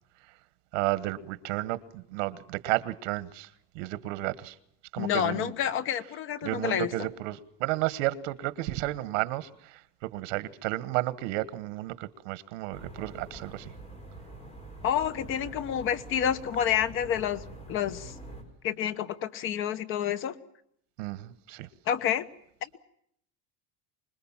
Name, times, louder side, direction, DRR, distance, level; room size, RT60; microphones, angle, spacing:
voice 1, 0.7-3.5 3.7-4.5 4.9-5.5 6.4-9.8 10.1-13.7 21.0-21.7, right 17 dB, 85° right, 1.4 m, -32 dB
voice 2, 5.0-7.1 14.8-18.1 18.6-20.3 21.9-22.3 22.6-22.8, left 9 dB, 35° left, 1.2 m, -29 dB
sound 1, 12.7-18.4, right 2 dB, 15° left, 4.8 m, -45 dB
25.5 x 21.0 x 7.3 m
cardioid pair, 175°, 37 cm